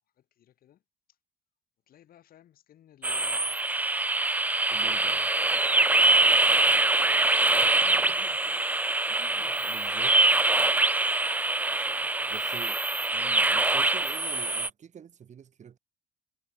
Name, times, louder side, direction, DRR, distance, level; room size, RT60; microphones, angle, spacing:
voice 1, 0.2-0.8 1.9-3.9 5.0-8.6 9.3-10.7 11.7-12.4, left 11 dB, 60° left, 7.5 m, -57 dB
sound 1, 3.0-14.7, right 2 dB, 10° right, 0.6 m, -24 dB
voice 2, 4.7-5.2 7.6-7.7 8.0-8.1 9.1-10.2 12.3-12.8 13.1-15.8, right 8 dB, 45° right, 4.0 m, -46 dB
cardioid pair, 110°, 17 cm